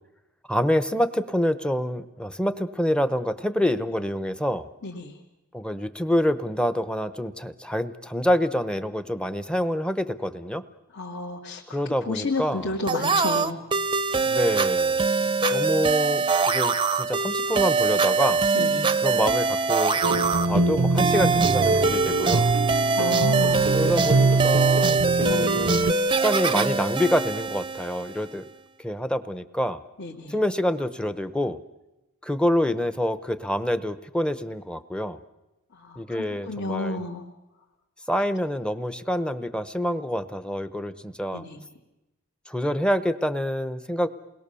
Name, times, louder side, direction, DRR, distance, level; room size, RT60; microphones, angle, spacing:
voice 1, 0.5-4.7 5.5-10.6 11.7-12.8 14.2-15.0 15.5-18.5 19.0-20.0 20.4-22.5 23.7-25.8 26.1-28.5 28.8-29.8 30.3-31.6 32.2-35.2 36.0-37.0 38.1-41.4 42.5-44.1, equal, 5° left, 12 dB, 0.9 m, -26 dB
voice 2, 10.9-11.6 12.1-13.6 18.5-18.9 23.0-23.7 30.0-30.3 35.9-37.2 41.3-41.6, left 2 dB, 60° left, -3 dB, 2.5 m, -31 dB
sound 1, 12.9-28.4, right 4 dB, 25° right, 0.8 m, -23 dB
sound 2, 20.0-25.9, right 3 dB, 65° right, 0.8 m, -23 dB
29.0 x 21.0 x 7.0 m, 0.97 s
head